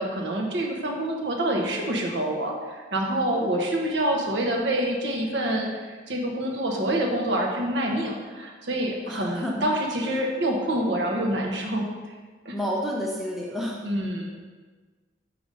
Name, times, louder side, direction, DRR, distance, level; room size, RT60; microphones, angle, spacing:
voice 1, 0.0-11.9 12.4-12.6 13.8-14.3, right 1 dB, 65° right, 0 dB, 1.0 m, -26 dB
voice 2, 9.1-9.5 12.5-13.8, equal, ahead, -4 dB, 0.7 m, -30 dB
5.1 x 4.8 x 5.4 m, 1.4 s
head